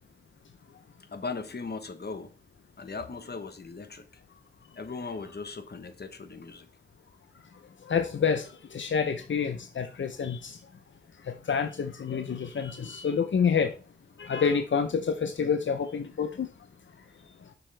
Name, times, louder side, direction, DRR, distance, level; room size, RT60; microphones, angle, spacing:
voice 1, 1.1-2.3 2.8-4.1 4.7-6.7, left 4 dB, 60° left, 1.1 m, -38 dB
voice 2, 7.9-10.6 11.3-13.7 14.2-16.5, left 6 dB, 90° left, 0.6 m, -28 dB
7.8 x 6.4 x 3.3 m
wide cardioid pair, 55°, 19 cm